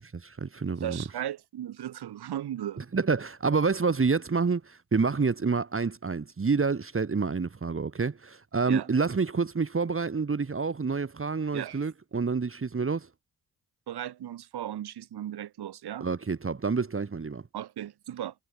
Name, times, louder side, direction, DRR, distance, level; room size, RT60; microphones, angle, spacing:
voice 1, 0.0-1.0 2.8-13.1 16.0-17.4, right 4 dB, 35° right, 2.2 m, -28 dB
voice 2, 0.8-2.8 8.7-8.9 11.5-11.8 13.9-16.1 17.5-18.3, right 11 dB, 75° right, 5.5 m, -36 dB
supercardioid pair, 55°, 39 cm